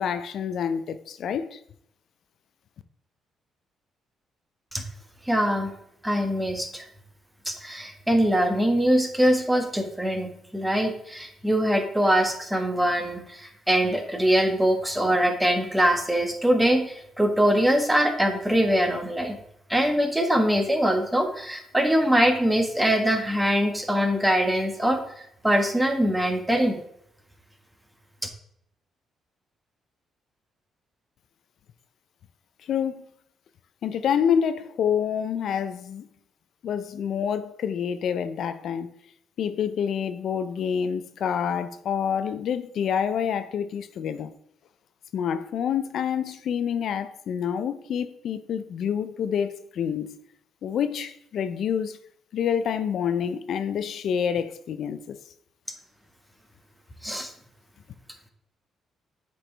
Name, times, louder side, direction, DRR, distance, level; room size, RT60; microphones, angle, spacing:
voice 1, 0.0-1.6 32.6-33.1 33.8-36.1 36.6-38.9 39.4-44.3 45.1-50.2 50.6-52.0 52.3-55.2, left 8 dB, 70° left, 0.4 m, -27 dB
voice 2, 5.3-5.7 6.0-6.9 7.4-19.4 19.7-26.8 57.0-57.3, equal, 5° right, 1.3 m, -23 dB
7.9 x 4.7 x 3.3 m
cardioid pair, 90°, 0 cm